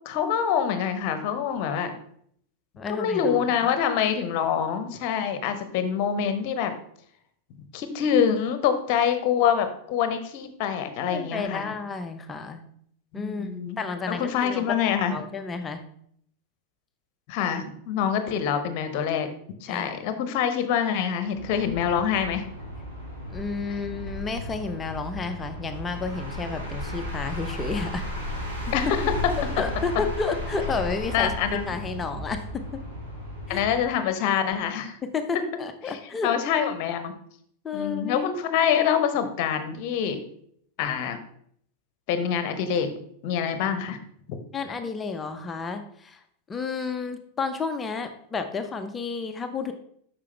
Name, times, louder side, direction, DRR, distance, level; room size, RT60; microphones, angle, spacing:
voice 1, 0.0-1.9 2.9-6.7 7.7-11.7 13.1-13.8 14.1-15.1 17.3-19.3 19.6-22.4 28.7-29.0 31.1-31.8 33.5-35.0 36.2-37.1 37.7-40.2 40.8-41.2 42.1-42.9 43.2-44.0 44.3-44.4, left 8 dB, 45° left, 9 dB, 0.9 m, -25 dB
voice 2, 2.8-3.4 11.1-12.6 13.1-13.5 13.8-14.7 15.1-15.8 19.7-20.1 23.3-28.0 28.6-28.7 29.4-31.3 31.7-32.6 33.5-33.6 35.1-36.3 37.6-38.3 44.5-46.2 46.5-49.7, left 4 dB, 20° left, 7 dB, 0.7 m, -31 dB
sound 1, 21.3-33.9, left 1 dB, 70° right, 3.2 m, -34 dB
8.4 x 5.9 x 3.4 m, 0.66 s
figure-of-eight pair, 90°, 0 cm